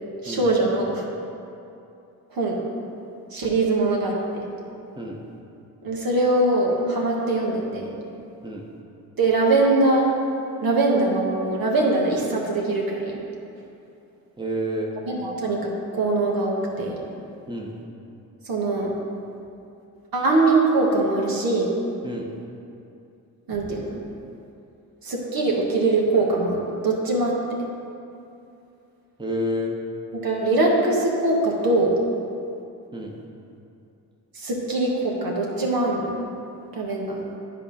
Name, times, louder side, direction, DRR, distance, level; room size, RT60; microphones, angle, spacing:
voice 1, 0.2-1.0 2.3-2.6 3.3-4.2 5.8-7.9 9.2-10.0 10.6-13.2 15.1-17.0 18.5-18.9 20.1-21.7 23.5-23.9 25.0-27.3 30.2-31.9 34.4-36.1 36.7-37.2, right 2 dB, 55° right, -2 dB, 1.6 m, -22 dB
voice 2, 14.4-14.9 17.5-17.7 22.0-22.3 29.2-29.8 32.9-33.2, equal, 10° right, -1 dB, 1.2 m, -29 dB
10.0 x 3.9 x 5.5 m, 2.7 s
hypercardioid pair, 45°, 43 cm